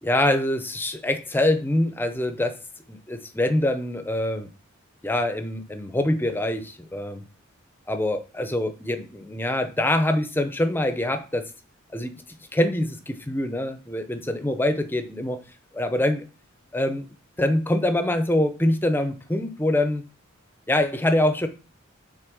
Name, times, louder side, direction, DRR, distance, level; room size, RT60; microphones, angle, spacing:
voice 1, 0.0-2.6 2.9-4.5 5.0-7.2 7.9-11.5 11.9-12.2 12.5-15.4 15.7-16.2 16.7-17.1 17.4-20.0 20.7-21.5, left 1 dB, 10° left, 0.7 m, -24 dB
6.3 x 4.2 x 6.2 m
head